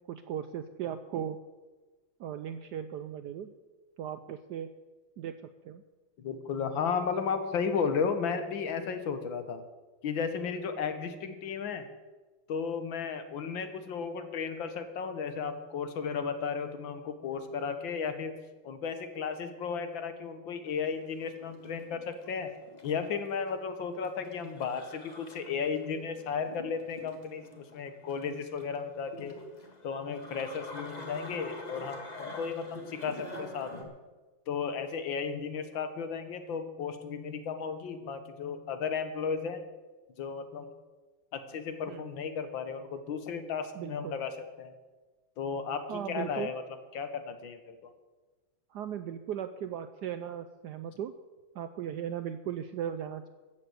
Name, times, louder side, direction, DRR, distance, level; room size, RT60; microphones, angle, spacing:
voice 1, 0.1-1.4 2.2-3.5 4.0-4.7 5.2-5.8 41.9-42.1 43.7-44.2 45.9-46.5 48.7-51.1 51.5-53.3, right 9 dB, 75° right, 10 dB, 0.9 m, -37 dB
voice 2, 6.2-9.6 10.0-11.9 12.5-18.3 18.6-22.5 22.8-29.3 29.8-33.9 34.5-39.6 40.2-40.7 41.3-44.7 45.4-46.6 46.9-47.9, left 6 dB, 70° left, 9 dB, 1.8 m, -34 dB
sound 1, 20.6-33.8, left 2 dB, 20° left, 1.6 m, -47 dB
14.5 x 7.5 x 7.9 m, 1.3 s
omnidirectional pair, 2.3 m